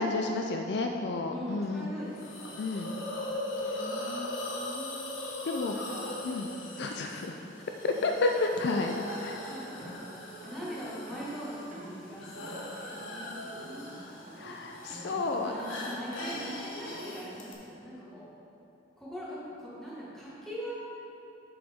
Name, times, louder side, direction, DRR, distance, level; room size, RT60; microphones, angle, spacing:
voice 1, 0.0-1.9 2.6-2.9 5.4-5.7 6.2-6.5 6.8-7.4 7.8-8.9 9.2-9.4 14.4-15.5, left 3 dB, 55° left, 3 dB, 0.4 m, -30 dB
voice 2, 1.3-2.6 3.5-5.0 5.7-7.1 9.4-14.5 14.8-18.3 19.0-20.7, equal, ahead, -9 dB, 1.6 m, -43 dB
Hiss, 2.1-17.5, left 1 dB, 80° left, 1.2 m, -40 dB
sound 1, 7.2-7.4 7.9-8.1 8.5-8.7 9.2-9.4 9.8-10.0 10.4-10.7 11.1-11.3 11.7-12.0 12.3-12.7 13.0-13.4 13.6-14.0 14.3-14.6 14.9-17.2, right 1 dB, 40° right, 1.0 m, -46 dB
7.8 x 7.1 x 3.6 m, 2.9 s
head